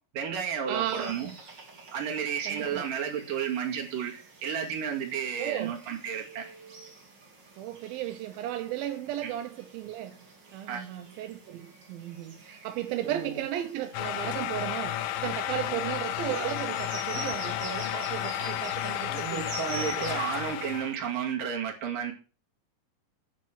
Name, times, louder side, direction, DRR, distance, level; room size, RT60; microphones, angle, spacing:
voice 1, 0.1-1.3 1.9-4.1 4.4-6.5 9.2-9.3 10.7-10.9 13.0-13.4 15.7-15.8 18.4-18.5 19.1-22.1, right 7 dB, 70° right, 3.7 m, -32 dB
voice 2, 0.7-1.4 2.5-2.9 5.4-5.7 7.6-10.2 10.5-19.5, right 12 dB, 90° right, 2.6 m, -35 dB
sound 1, 0.8-20.8, right 3 dB, 35° right, 2.8 m, -47 dB
sound 2, 13.9-21.0, left 12 dB, 80° left, 2.3 m, -32 dB
9.1 x 7.4 x 6.1 m
omnidirectional pair, 4.1 m